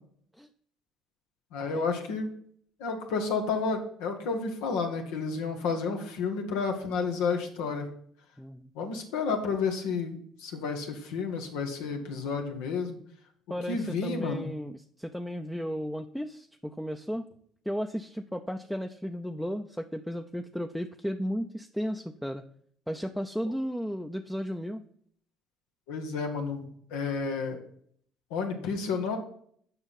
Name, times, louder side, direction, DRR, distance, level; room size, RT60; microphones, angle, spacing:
voice 1, 1.5-2.3 2.8-7.9 8.7-13.0 13.7-14.5 25.9-26.6 26.9-27.6 28.3-29.2, left 4 dB, 80° left, 3 dB, 1.5 m, -31 dB
voice 2, 8.4-8.7 13.5-17.3 17.7-22.4 22.9-24.8, equal, ahead, 5 dB, 0.6 m, -34 dB
7.9 x 5.6 x 5.8 m, 0.63 s
supercardioid pair, 70°, 0 cm